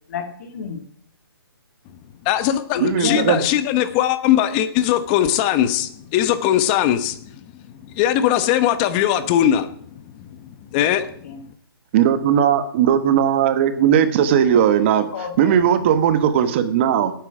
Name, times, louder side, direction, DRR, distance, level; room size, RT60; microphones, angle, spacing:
voice 1, 0.1-0.8 2.7-3.5 11.0-11.4 15.1-15.6, left 6 dB, 40° left, 5 dB, 1.8 m, -29 dB
voice 2, 2.2-7.2 7.9-9.8 10.2-11.1, left 11 dB, 20° left, 12 dB, 0.9 m, -20 dB
voice 3, 2.8-3.4 11.9-15.1 15.4-17.1, right 9 dB, 30° right, 11 dB, 1.3 m, -17 dB
17.5 x 9.4 x 5.0 m, 0.62 s
hypercardioid pair, 160°, 13 cm